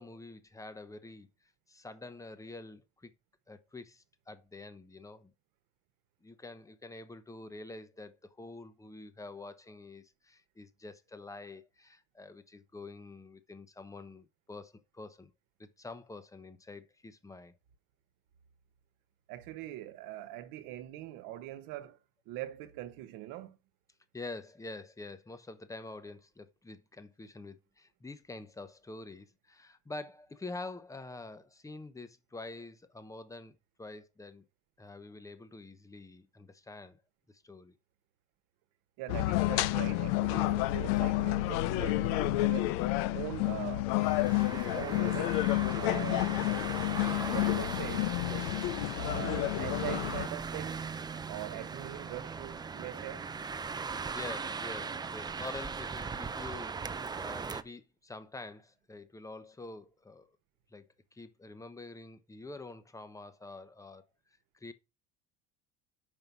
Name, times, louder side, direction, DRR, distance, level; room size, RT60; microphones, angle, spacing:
voice 1, 0.0-3.1 3.5-5.3 6.2-15.3 15.6-17.5 24.1-34.4 34.8-37.0 37.3-37.8 54.1-60.3 60.7-60.9 61.1-64.0 64.5-64.7, left 2 dB, 10° left, 0.8 m, -47 dB
voice 2, 19.3-22.0 22.3-23.6 39.0-42.8 43.1-45.4 45.7-46.6 47.2-48.6 48.9-50.8 51.3-53.3, right 15 dB, 70° right, 1.2 m, -42 dB
sound 1, 39.1-50.3, left 17 dB, 90° left, 0.6 m, -30 dB
sound 2, 44.0-57.6, right 5 dB, 10° right, 0.4 m, -39 dB
5.4 x 5.3 x 6.0 m
cardioid pair, 125°, 35 cm